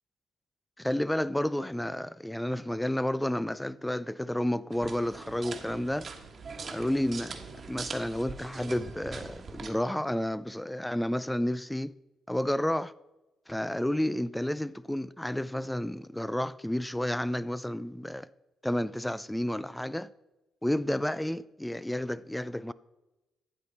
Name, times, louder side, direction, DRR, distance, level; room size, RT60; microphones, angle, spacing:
voice 1, 0.8-6.1 6.7-7.4 7.7-11.9 12.3-12.9 13.5-18.3 18.6-20.1 20.6-22.7, left 1 dB, 5° left, 0.4 m, -31 dB
sound 1, 4.7-9.7, right 4 dB, 40° right, 1.3 m, -42 dB
12.0 x 8.6 x 4.2 m
cardioid pair, 90°, 0 cm